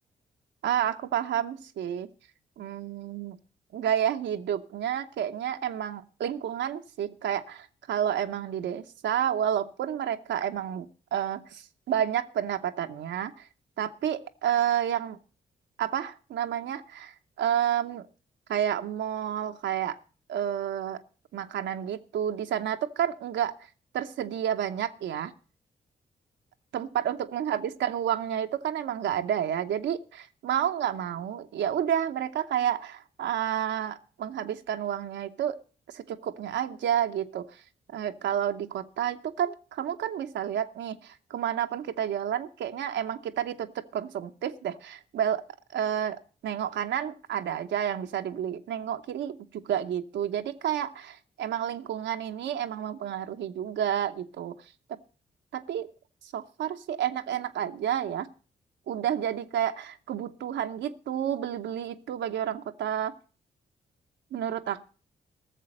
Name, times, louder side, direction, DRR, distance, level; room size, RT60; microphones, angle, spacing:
voice 1, 0.6-2.1 2.6-3.4 3.7-13.5 13.8-15.2 15.8-18.1 18.5-20.0 20.3-21.0 21.3-23.5 23.9-25.3 26.7-35.6 35.9-37.6 37.9-45.4 45.7-54.5 54.9-55.0 55.5-55.9 56.3-58.3 58.9-63.1 64.3-64.8, right 10 dB, 80° right, 6 dB, 0.9 m, -30 dB
14.5 x 7.0 x 6.5 m, 0.38 s
supercardioid pair, 50°, 19 cm